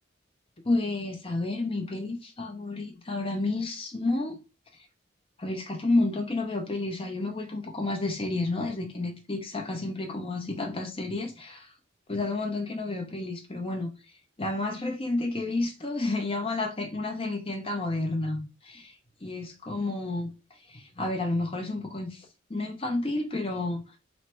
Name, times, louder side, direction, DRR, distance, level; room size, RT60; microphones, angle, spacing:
voice 1, 0.6-4.4 5.4-11.7 12.1-13.9 14.4-18.9 19.2-20.3 20.7-23.8, left 2 dB, 30° left, 0.8 m, -30 dB
3.1 x 2.8 x 4.4 m
head